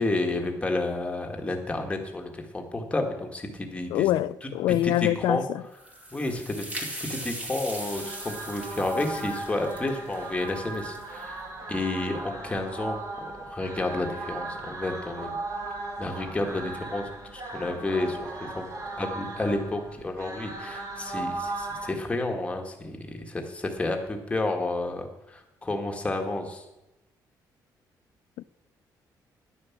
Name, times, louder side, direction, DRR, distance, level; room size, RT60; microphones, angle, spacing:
voice 1, 0.0-4.1 4.4-4.5 4.8-5.4 6.1-11.4 11.7-15.4 16.0-18.7 19.0-26.7, left 2 dB, 15° left, 1.8 m, -31 dB
voice 2, 3.9-5.6 28.4-28.5, left 14 dB, 90° left, 0.3 m, -25 dB
sound 1, 5.7-11.2, right 1 dB, 20° right, 2.5 m, -39 dB
sound 2, 7.6-21.9, right 2 dB, 45° right, 2.3 m, -37 dB
11.0 x 9.7 x 7.3 m
cardioid pair, 140°, 8 cm